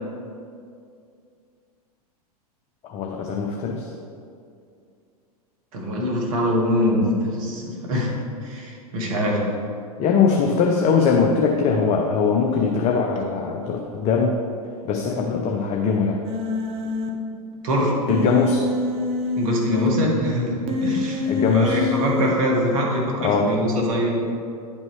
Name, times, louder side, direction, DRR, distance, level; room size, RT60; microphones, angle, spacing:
voice 1, 2.8-3.9 10.0-14.4 14.8-16.2 18.1-18.7 21.3-21.9 23.2-23.6, left 5 dB, 35° left, 2 dB, 0.6 m, -21 dB
voice 2, 5.7-8.1 8.4-9.5 17.6-18.1 19.4-24.3, equal, 60° right, -1 dB, 1.7 m, -23 dB
Human voice, 16.2-17.1 18.1-19.9 20.7-22.3, left 3 dB, 30° right, 0.9 m, -26 dB
10.0 x 5.3 x 3.2 m, 2.4 s
figure-of-eight pair, 95°, 20 cm